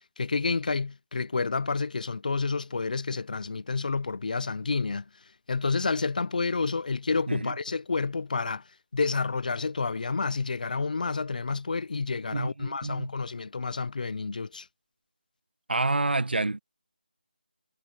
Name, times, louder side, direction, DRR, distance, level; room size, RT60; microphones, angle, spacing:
voice 1, 0.2-5.0 5.5-8.6 8.9-14.7, left 4 dB, 55° left, 0.6 m, -29 dB
voice 2, 12.3-13.1 15.7-16.6, right 2 dB, 80° right, 1.6 m, -28 dB
figure-of-eight pair, 165°, 5 cm